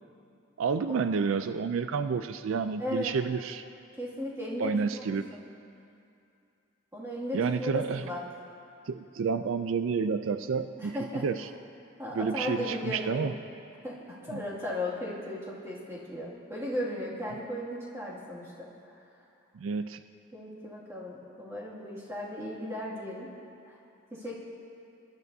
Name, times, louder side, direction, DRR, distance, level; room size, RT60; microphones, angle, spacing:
voice 1, 0.6-3.6 4.6-5.3 7.3-8.0 8.9-11.5 12.1-13.3 14.3-14.4 19.5-20.0, right 5 dB, 75° right, 10 dB, 0.4 m, -30 dB
voice 2, 2.8-3.1 4.0-5.0 6.9-8.2 10.8-11.3 12.0-13.3 13.8-19.0 20.3-23.3 23.7-23.8 24.1-24.3, left 1 dB, 15° right, -6 dB, 2.2 m, -36 dB
23.0 x 12.0 x 2.7 m, 2.5 s
head